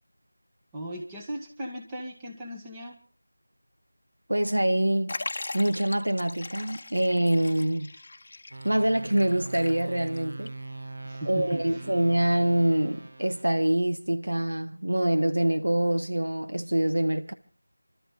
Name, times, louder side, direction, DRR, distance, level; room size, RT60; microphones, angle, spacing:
voice 1, 0.7-3.0 11.0-11.9, right 1 dB, 10° right, 1.6 m, -37 dB
voice 2, 4.3-5.2 5.5-7.9 8.6-10.5 11.2-17.3, right 1 dB, 80° right, 1.4 m, -25 dB
Liquid, 5.1-10.2 10.5-10.6 11.5-11.6, left 2 dB, 40° left, 1.0 m, -39 dB
sound 1, 8.5-13.7, right 2 dB, 60° right, 0.9 m, -41 dB
26.0 x 13.0 x 3.9 m
figure-of-eight pair, 170°, 0 cm